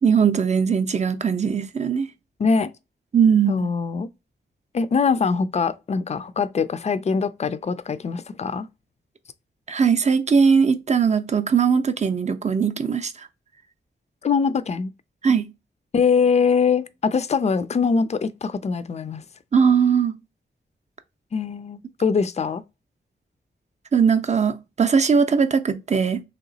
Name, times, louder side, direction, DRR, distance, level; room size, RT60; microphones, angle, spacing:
voice 1, 0.0-2.1 3.1-3.7 9.7-13.1 15.2-15.5 19.5-20.2 23.9-26.2, right 6 dB, 35° right, 0.5 m, -19 dB
voice 2, 2.4-2.7 3.5-4.1 4.7-8.7 14.2-14.9 15.9-19.2 21.3-22.6, left 5 dB, 35° left, 0.3 m, -22 dB
3.2 x 2.9 x 3.9 m
wide cardioid pair, 105°, 19 cm